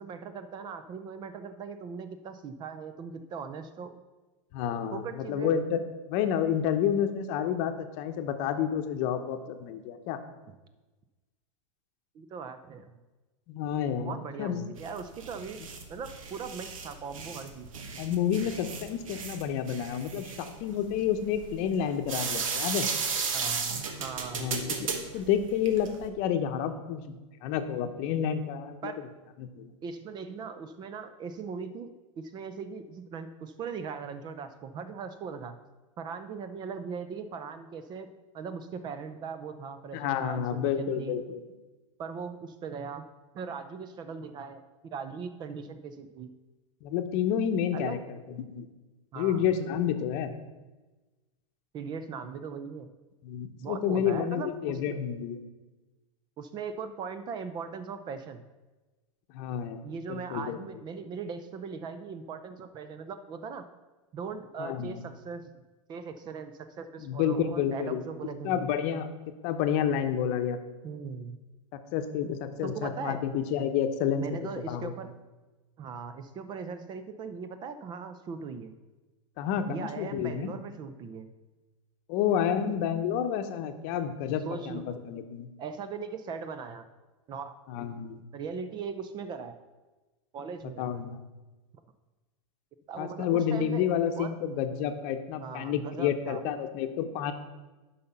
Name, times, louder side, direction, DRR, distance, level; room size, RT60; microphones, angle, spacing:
voice 1, 0.0-4.0 4.9-5.5 12.1-13.0 14.0-15.6 15.9-17.7 23.3-24.5 28.8-29.0 29.8-35.6 36.0-38.1 38.3-41.2 42.0-43.1 43.3-44.6 44.9-46.3 47.7-48.0 49.1-49.5 51.7-52.9 53.6-55.0 56.4-58.4 59.8-63.6 64.1-65.0 65.2-65.4 65.9-68.7 70.8-71.4 72.6-73.2 74.2-75.1 75.8-78.7 79.6-81.3 84.5-84.9 85.6-86.9 87.3-87.5 88.3-89.6 90.3-90.9 92.9-94.3 95.4-96.4, right 5 dB, 25° right, 10 dB, 0.5 m, -39 dB
voice 2, 4.5-5.8 6.1-10.2 13.5-14.6 18.0-22.9 24.3-24.9 25.1-28.9 29.4-29.7 39.9-41.4 46.8-48.0 48.4-48.7 49.1-50.3 53.2-55.4 59.3-59.8 60.1-60.6 64.6-65.0 67.0-68.0 68.4-69.1 69.4-70.6 71.7-74.2 74.6-74.9 79.4-80.5 82.1-85.5 87.7-88.2 90.8-91.2 93.0-97.3, left 8 dB, 45° left, 7 dB, 0.9 m, -30 dB
sound 1, 14.8-26.1, right 5 dB, 85° right, 1.2 m, -35 dB
8.5 x 5.6 x 5.6 m, 1.2 s
supercardioid pair, 135°, 17 cm